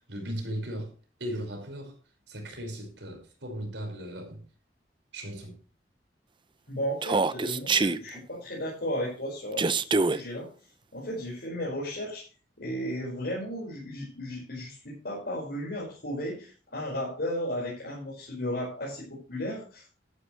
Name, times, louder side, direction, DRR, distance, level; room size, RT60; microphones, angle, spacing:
voice 1, 0.1-0.9 1.2-2.0 2.3-4.4 5.1-5.6, equal, 80° right, 5.4 m, -37 dB
voice 2, 6.7-10.5 10.9-12.3 12.6-20.0, equal, 60° left, 5.4 m, -34 dB
Human voice, 7.0-8.0 9.6-10.2, right 4 dB, 30° right, 0.5 m, -24 dB
13.0 x 11.5 x 3.2 m
head